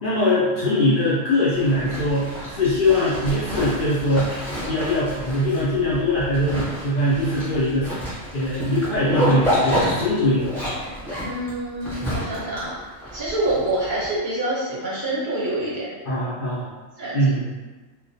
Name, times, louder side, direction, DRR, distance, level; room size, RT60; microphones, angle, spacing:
voice 1, 0.0-4.3 4.7-7.9 8.3-10.6 16.0-16.7 17.1-17.5, left 1 dB, 75° left, -9 dB, 0.5 m, -22 dB
Zipper (clothing), 1.6-14.1, equal, ahead, 0.9 m, -29 dB
voice 2, 11.2-12.7 13.1-15.9 17.0-17.3, right 1 dB, 45° right, -9 dB, 0.7 m, -26 dB
2.2 x 2.1 x 2.6 m, 1.3 s
omnidirectional pair, 1.4 m